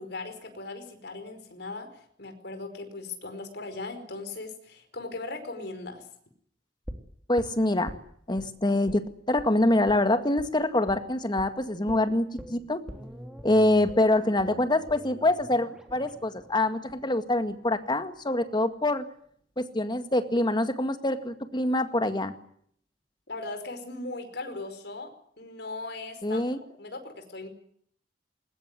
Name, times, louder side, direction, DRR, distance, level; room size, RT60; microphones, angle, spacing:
voice 1, 0.0-1.9 2.2-6.1 23.3-25.1 25.4-26.4 26.8-27.5, left 3 dB, 65° left, 8 dB, 4.8 m, -38 dB
sound 1, 6.8-8.5 8.9-9.1 9.4-9.5 9.9-10.0 10.4-10.5 10.9-11.1 11.4-11.5 11.9-17.9 18.2-18.3, equal, 5° right, 3.2 m, -45 dB
voice 2, 7.3-7.9 8.3-12.8 13.4-19.0 19.6-22.3 26.2-26.6, left 1 dB, 25° left, 9 dB, 2.0 m, -25 dB
21.0 x 20.0 x 9.7 m, 0.66 s
head